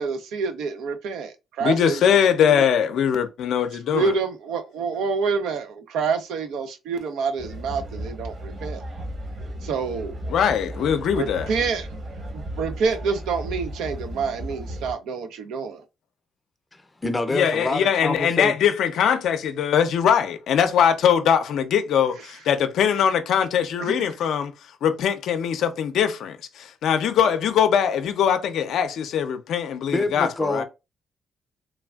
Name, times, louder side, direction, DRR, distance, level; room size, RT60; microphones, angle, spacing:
voice 1, 0.0-2.7 3.9-8.8 9.6-10.1 11.1-11.9 12.3-15.8 23.8-24.1, right 5 dB, 85° right, 0.5 m, -27 dB
voice 2, 1.6-4.1 10.3-11.5 17.3-24.5 24.8-30.6, left 8 dB, 75° left, 0.5 m, -21 dB
sound 1, 7.4-14.9, equal, 45° right, 1.1 m, -35 dB
voice 3, 16.7-18.5 29.9-30.6, left 2 dB, 20° left, 0.5 m, -26 dB
3.3 x 2.4 x 2.3 m
cardioid pair, 90°, 0 cm